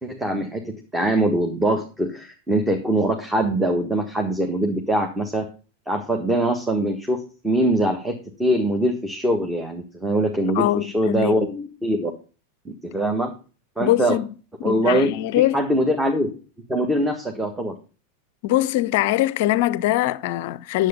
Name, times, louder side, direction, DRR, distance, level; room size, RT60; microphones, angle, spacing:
voice 1, 0.0-5.4 5.9-7.2 7.4-12.1 12.6-13.3 13.8-14.2 14.6-16.3 16.7-17.7, right 1 dB, 10° right, 1.5 m, -23 dB
voice 2, 10.5-11.5 13.8-14.3 14.6-15.6 18.4-20.9, left 15 dB, 50° left, 0.5 m, -22 dB
10.0 x 7.6 x 5.1 m
figure-of-eight pair, 90°, 0 cm